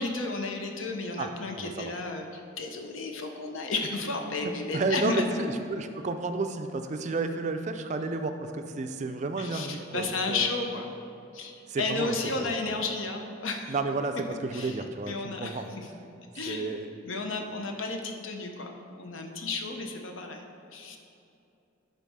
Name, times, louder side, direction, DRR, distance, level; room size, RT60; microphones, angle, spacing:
voice 1, 0.0-5.2 9.4-10.9 11.3-13.7 14.5-14.8 15.1-15.9 16.3-16.8 17.0-18.7 19.0-20.4 20.7-21.0, left 3 dB, 75° left, 4 dB, 0.7 m, -33 dB
voice 2, 1.6-1.9 4.7-10.5 11.7-12.7 13.7-15.7 16.4-16.9, right 3 dB, 35° right, 7 dB, 0.3 m, -32 dB
11.0 x 4.0 x 3.6 m, 2.7 s
head